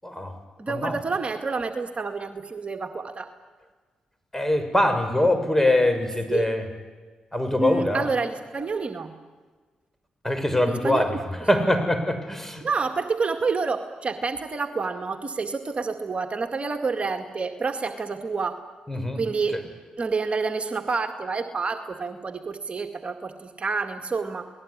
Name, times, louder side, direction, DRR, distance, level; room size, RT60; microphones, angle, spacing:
voice 1, 0.0-0.4 0.7-1.0 4.3-6.6 7.3-8.1 10.2-12.6 18.9-19.2 19.5-19.6, left 1 dB, 10° left, 8 dB, 6.3 m, -23 dB
voice 2, 0.6-3.3 6.3-6.5 7.6-9.1 10.7-11.1 12.6-18.6 19.2-19.6 20.0-24.5, right 4 dB, 40° right, 6 dB, 2.1 m, -28 dB
28.5 x 19.5 x 10.0 m, 1.4 s
hypercardioid pair, 40°, 3 cm